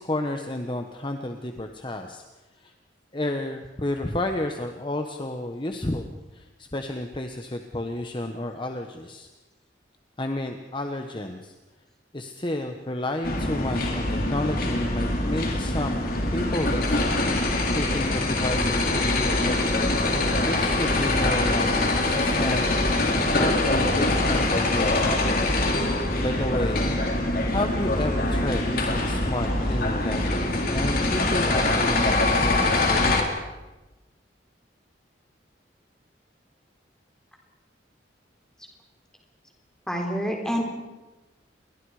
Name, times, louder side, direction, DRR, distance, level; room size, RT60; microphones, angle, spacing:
voice 1, 0.0-2.2 2.6-2.7 3.1-9.3 10.2-11.5 12.1-16.0 16.3-17.1 17.7-20.1 20.4-25.6 26.2-27.0 27.5-33.2, left 1 dB, 25° left, 5 dB, 1.2 m, -31 dB
sound 1, 13.2-33.2, left 2 dB, 50° left, 3.4 m, -24 dB
voice 2, 39.9-40.6, equal, 5° left, 1 dB, 4.0 m, -27 dB
30.0 x 22.0 x 5.0 m, 1.1 s
head